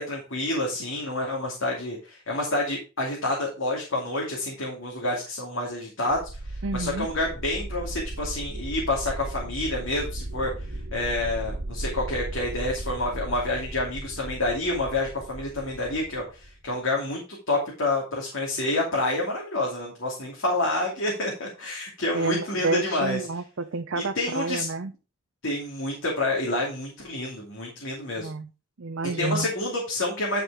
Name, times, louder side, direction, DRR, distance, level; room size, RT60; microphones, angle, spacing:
voice 1, 0.0-6.2 6.5-10.5 10.9-17.2 17.5-23.2 24.0-24.7 25.4-28.3 29.2-30.4, left 2 dB, 65° left, 2.6 m, -28 dB
sound 1, 6.1-16.7, right 1 dB, 85° right, 1.8 m, -36 dB
voice 2, 6.6-7.1 22.1-24.9 28.2-28.5 28.8-29.5, right 3 dB, 70° right, 0.6 m, -29 dB
11.0 x 4.8 x 4.8 m
head